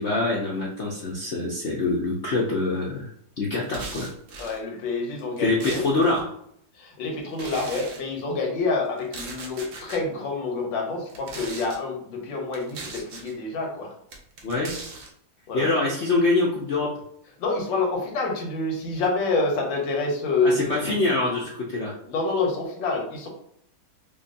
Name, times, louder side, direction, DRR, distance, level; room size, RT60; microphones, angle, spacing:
voice 1, 0.0-3.1 3.4-4.1 5.4-6.3 14.4-14.7 15.5-16.9 20.4-21.9, left 2 dB, 65° left, -3 dB, 0.7 m, -24 dB
sound 1, 3.6-4.6 5.2-6.2 7.3-8.0 9.0-10.0 11.0-11.8 12.5-13.3 14.1-15.1, right 3 dB, 60° right, 0.8 m, -39 dB
voice 2, 4.4-5.8 6.7-13.9 15.5-15.7 17.4-20.8 22.0-23.3, left 3 dB, 85° left, 0 dB, 1.6 m, -27 dB
5.0 x 2.3 x 2.6 m, 0.70 s
omnidirectional pair, 2.0 m